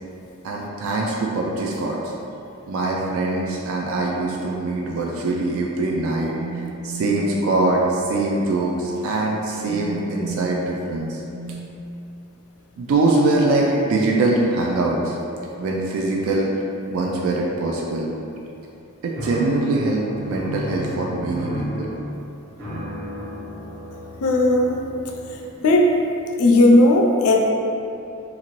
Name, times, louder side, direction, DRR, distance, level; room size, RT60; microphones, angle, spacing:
voice 1, 0.4-2.1 2.7-11.7 12.8-15.2 15.6-16.5 16.9-18.1 19.0-21.9, right 2 dB, 70° right, -2 dB, 0.3 m, -23 dB
sound 1, 19.1-25.6, equal, 50° right, 0.8 m, -33 dB
voice 2, 24.2-24.8 25.6-25.9 26.4-27.5, left 1 dB, 80° left, 1 dB, 0.4 m, -15 dB
2.9 x 2.6 x 3.0 m, 2.8 s
head